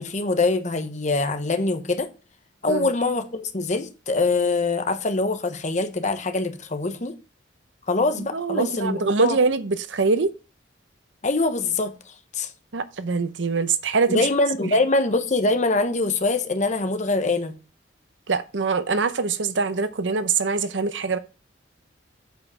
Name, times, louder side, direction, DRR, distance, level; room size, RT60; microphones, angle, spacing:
voice 1, 0.0-2.1 2.6-7.1 7.9-9.4 11.2-11.9 12.3-12.5 14.1-17.6, left 3 dB, 40° left, 1.0 m, -24 dB
voice 2, 8.3-10.3 12.7-14.3 18.3-21.2, right 4 dB, 85° right, 0.8 m, -23 dB
8.1 x 5.2 x 4.8 m
head